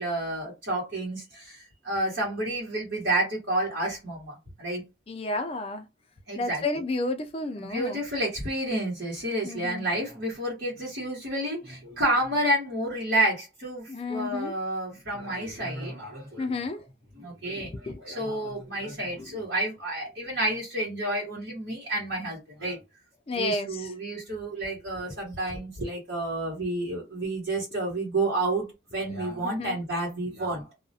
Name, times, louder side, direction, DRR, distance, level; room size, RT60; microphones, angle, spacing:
voice 1, 0.0-4.8 6.3-6.6 7.6-16.6 17.2-22.8 23.3-28.7 28.9-30.7, right 1 dB, 70° right, 1.1 m, -30 dB
voice 2, 5.1-5.9 6.4-8.0 9.4-9.9 13.9-14.5 16.4-16.8 17.5-18.2 19.2-19.3 23.3-23.9 29.4-29.8, left 2 dB, 30° left, 0.3 m, -32 dB
2.3 x 2.1 x 2.6 m
head